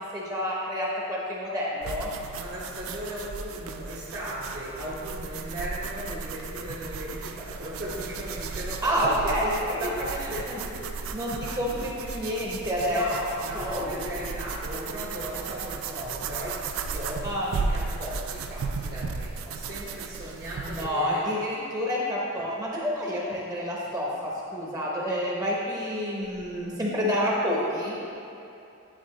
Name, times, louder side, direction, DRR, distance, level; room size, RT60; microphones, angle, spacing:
voice 1, 0.1-2.1 8.8-9.8 10.3-10.6 10.9-13.1 13.5-14.0 17.2-17.6 20.6-28.0, equal, 15° right, -5 dB, 0.8 m, -29 dB
sound 1, 1.8-20.9, right 4 dB, 65° right, 0.3 m, -35 dB
voice 2, 2.3-10.9 12.8-21.3, equal, 45° right, -7 dB, 1.0 m, -37 dB
9.3 x 3.5 x 3.2 m, 2.8 s
head